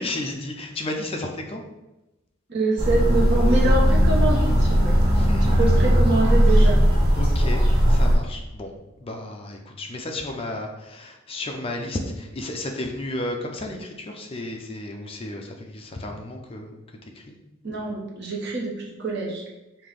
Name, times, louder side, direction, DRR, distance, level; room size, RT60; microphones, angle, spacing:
voice 1, 0.0-1.6 5.1-5.5 7.2-8.7 9.0-16.8 17.2-17.4, left 1 dB, 30° left, 2 dB, 0.4 m, -33 dB
voice 2, 2.5-4.9 5.4-6.8 17.6-19.4, right 2 dB, 55° right, -2 dB, 1.0 m, -25 dB
sound 1, 2.8-8.1, equal, 25° right, 1.4 m, -18 dB
5.6 x 2.4 x 3.3 m, 0.99 s
head